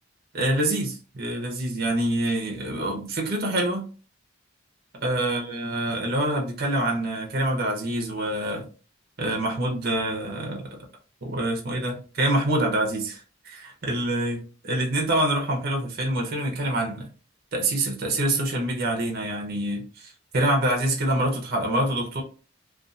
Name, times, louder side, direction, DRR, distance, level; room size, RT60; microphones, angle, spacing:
voice 1, 0.3-3.9 5.0-8.7 9.2-10.8 11.2-17.1 17.5-22.2, right 1 dB, 50° right, 0.7 m, -26 dB
2.6 x 2.4 x 2.4 m
head